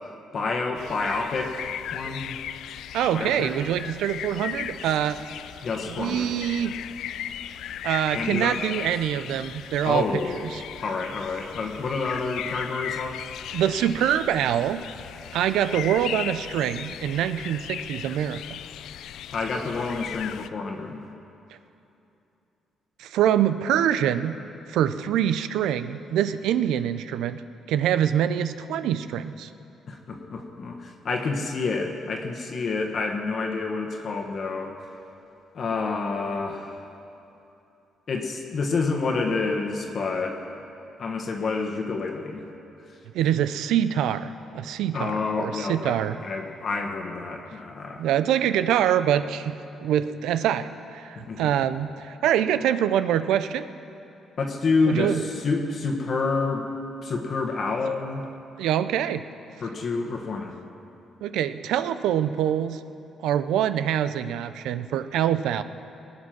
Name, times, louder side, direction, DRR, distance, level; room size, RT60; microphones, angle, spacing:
voice 1, 0.0-2.4 3.1-3.5 5.6-6.3 8.1-8.6 9.8-10.4 10.8-13.2 19.3-21.0 29.9-34.7 35.5-36.8 38.1-40.4 41.0-42.4 44.9-48.0 51.3-51.5 54.4-56.7 57.0-58.2 59.6-60.6, left 4 dB, 50° left, 2 dB, 1.4 m, -28 dB
sound 1, 0.8-20.5, left 10 dB, 80° left, 0.4 m, -37 dB
voice 2, 2.9-5.2 5.9-6.8 7.8-10.0 13.5-14.8 15.3-18.4 23.0-24.3 24.7-27.4 27.7-29.5 43.1-46.2 48.0-53.7 54.9-55.2 58.6-59.2 61.2-62.8 63.2-65.6, right 10 dB, 85° right, 12 dB, 0.5 m, -25 dB
20.0 x 8.6 x 6.0 m, 2.8 s
cardioid pair, 90°, 0 cm